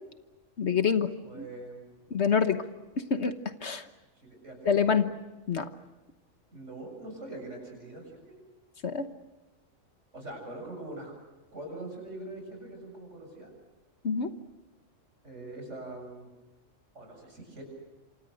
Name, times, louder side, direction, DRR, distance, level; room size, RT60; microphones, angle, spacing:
voice 1, 0.6-1.4 2.1-2.6 3.0-3.3 3.6-3.8 4.6-5.1 5.5-5.7 8.8-9.1 14.0-14.3, left 6 dB, 55° left, 9 dB, 1.4 m, -26 dB
voice 2, 1.2-1.9 3.0-3.1 4.2-5.0 6.5-8.4 10.1-11.1 11.5-13.5 15.2-16.3 16.9-17.6, right 2 dB, 60° right, 3 dB, 7.7 m, -43 dB
28.0 x 26.0 x 6.5 m, 1.1 s
omnidirectional pair, 1.4 m